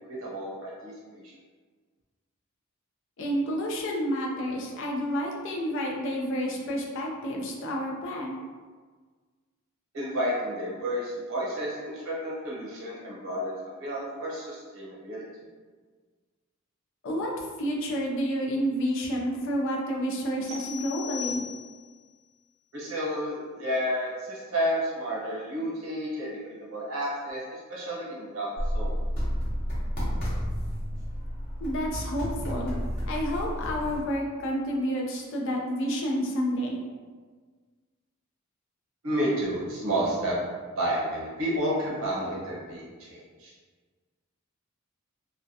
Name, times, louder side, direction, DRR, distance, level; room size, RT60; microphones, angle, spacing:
voice 1, 0.1-1.3 9.9-15.2 22.7-28.9 39.0-40.4 40.8-43.5, equal, 70° right, -6 dB, 0.8 m, -31 dB
voice 2, 3.2-8.4 17.0-21.4 31.6-32.7 33.1-36.8, equal, 65° left, -1 dB, 0.4 m, -30 dB
sound 1, 20.5-22.0, left 9 dB, 35° right, 0.6 m, -38 dB
sound 2, 28.6-34.0, equal, 45° left, 0.8 m, -31 dB
2.3 x 2.1 x 2.6 m, 1.5 s
head